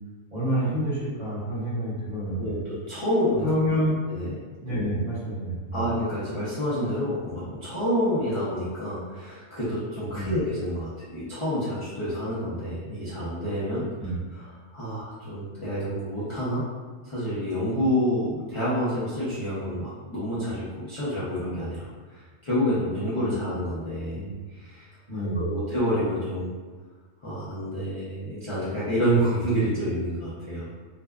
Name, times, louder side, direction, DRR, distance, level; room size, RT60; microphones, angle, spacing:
voice 1, 0.3-2.6 3.4-4.0 4.6-5.8 10.1-10.3 14.0-14.2 23.3-23.4 24.1-24.4 25.1-25.5, equal, 40° right, -11 dB, 1.0 m, -28 dB
voice 2, 2.4-3.5 4.0-4.3 5.7-16.6 17.0-24.2 24.5-24.9 25.1-26.5 27.2-30.7, equal, 40° left, -12 dB, 0.4 m, -28 dB
2.6 x 2.2 x 2.3 m, 1.4 s
omnidirectional pair, 1.3 m